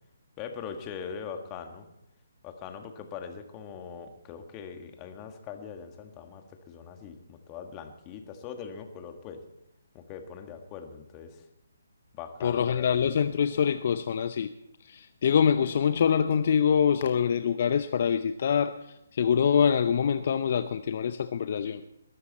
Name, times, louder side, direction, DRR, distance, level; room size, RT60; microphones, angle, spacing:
voice 1, 0.4-1.8 2.4-9.4 9.9-11.5 12.1-12.9, left 7 dB, 25° left, 6 dB, 1.8 m, -41 dB
voice 2, 12.4-14.5 14.8-18.7 19.1-21.8, left 7 dB, 50° left, 11 dB, 0.6 m, -25 dB
21.0 x 12.5 x 4.3 m, 0.84 s
figure-of-eight pair, 145°, 0 cm